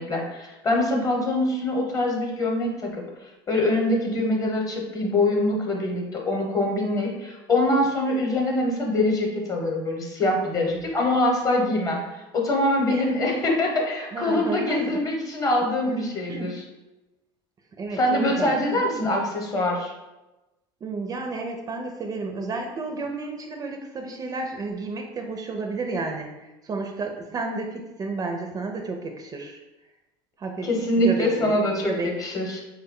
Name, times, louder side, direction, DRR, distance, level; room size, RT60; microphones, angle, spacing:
voice 1, 0.0-3.0 3.5-12.0 12.3-16.5 17.9-19.9 30.6-32.6, left 1 dB, 30° left, 0 dB, 0.8 m, -24 dB
voice 2, 14.1-15.0 15.9-16.6 17.8-18.5 20.8-29.6 30.4-30.7 31.0-31.6 31.8-32.1, right 3 dB, 30° right, 3 dB, 0.4 m, -31 dB
3.3 x 2.2 x 3.6 m, 1.0 s
supercardioid pair, 100°, 12 cm